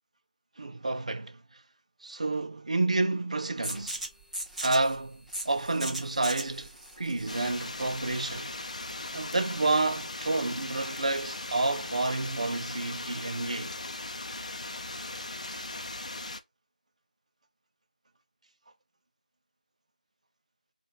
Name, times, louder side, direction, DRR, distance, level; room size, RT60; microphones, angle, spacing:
voice 1, 0.6-1.6 2.0-4.0 4.6-6.7 7.0-8.5 9.1-13.7, right 2 dB, 50° right, 0.6 m, -30 dB
sound 1, 3.6-9.1, right 1 dB, ahead, 0.6 m, -39 dB
sound 2, 7.3-16.4, left 2 dB, 50° left, 0.6 m, -38 dB
3.3 x 2.5 x 4.2 m
figure-of-eight pair, 170°, 5 cm